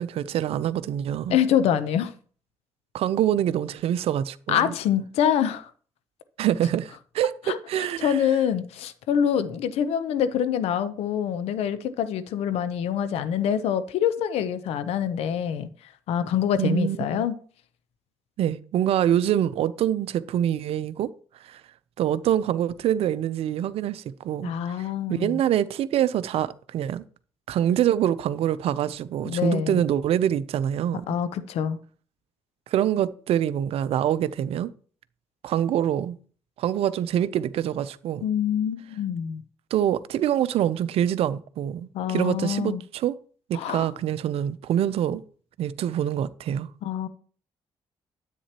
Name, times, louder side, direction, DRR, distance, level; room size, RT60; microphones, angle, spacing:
voice 1, 0.0-1.4 2.9-4.7 6.4-8.2 16.6-17.3 18.4-21.1 21.4-21.6 22.0-27.0 27.5-31.2 32.7-34.7 35.4-36.2 36.6-38.2 39.7-43.2 43.5-45.2 45.6-46.7, right 10 dB, 70° right, 0.6 m, -25 dB
voice 2, 1.3-2.1 4.5-5.7 7.5-15.7 16.1-17.3 24.4-25.4 29.2-29.8 31.1-31.8 38.2-39.4 41.9-42.8 43.5-43.9 46.8-47.1, left 9 dB, 80° left, 0.8 m, -25 dB
10.0 x 8.3 x 2.9 m
supercardioid pair, 60°, 10 cm